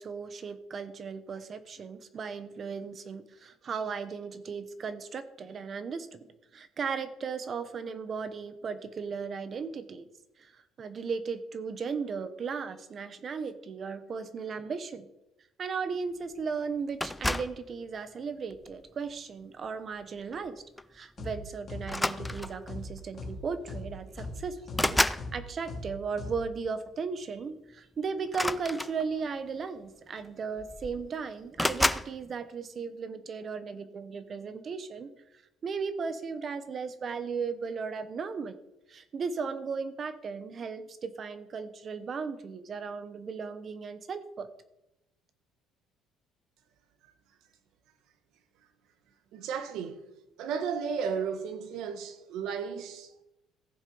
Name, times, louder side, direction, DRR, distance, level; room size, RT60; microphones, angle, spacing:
voice 1, 0.0-6.3 6.5-10.1 10.4-15.1 15.6-20.6 20.9-35.1 35.6-38.6 38.9-44.5, right 5 dB, 30° right, 0.9 m, -36 dB
sound 1, 17.0-17.6 18.5-18.8 20.3-20.5 20.8-21.0 21.8-22.7 23.7-23.8 24.1-25.3 28.3-29.4 30.3-30.4 30.6-31.1 31.6-32.1, left 1 dB, 5° left, 0.3 m, -30 dB
sound 2, 21.2-21.3 21.7-21.8 22.2-22.3 22.7-22.8 23.2-23.3 23.7-23.8 24.2-24.3 24.7-24.8 25.2-25.3 25.7-25.8 26.2-26.3, left 3 dB, 30° left, 3.1 m, -38 dB
voice 2, 49.3-50.0 50.4-53.2, right 6 dB, 65° right, 1.4 m, -34 dB
15.5 x 7.2 x 5.5 m
cardioid pair, 160°, 0 cm